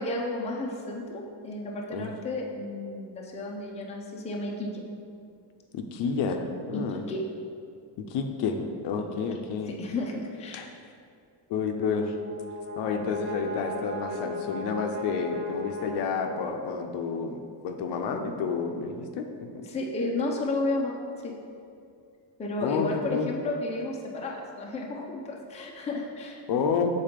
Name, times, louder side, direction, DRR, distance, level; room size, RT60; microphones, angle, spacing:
voice 1, 0.0-4.8 6.7-7.2 9.6-10.7 19.6-21.3 22.4-26.4, left 2 dB, 15° left, -2 dB, 0.6 m, -32 dB
voice 2, 5.7-7.0 8.1-9.7 10.5-10.7 11.5-12.2 12.8-17.4 17.6-19.3 22.6-23.3 26.5-26.9, left 5 dB, 65° left, 5 dB, 0.6 m, -30 dB
Brass instrument, 11.6-16.7, left 2 dB, 55° right, 1.6 m, -37 dB
7.4 x 4.0 x 5.1 m, 2.3 s
cardioid pair, 175°, 46 cm